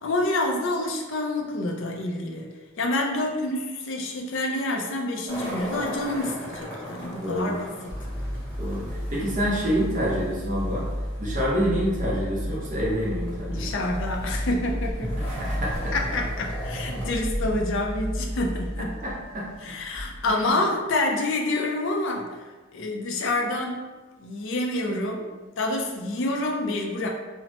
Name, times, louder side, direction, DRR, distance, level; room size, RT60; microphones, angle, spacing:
voice 1, 0.0-2.5 2.8-7.9 13.5-15.2 15.9-18.9 19.6-23.9 24.2-25.3 25.6-27.1, left 2 dB, 60° left, 0 dB, 0.4 m, -28 dB
sound 1, 5.3-17.1, equal, 5° left, 0.7 m, -39 dB
voice 2, 7.2-7.5 8.6-10.9 11.2-13.7 15.3-16.0 19.0-19.5 20.3-20.6, equal, 35° right, -5 dB, 0.6 m, -27 dB
sound 2, 7.9-20.5, equal, 90° right, 0.7 m, -32 dB
3.0 x 2.0 x 2.8 m, 1.3 s
head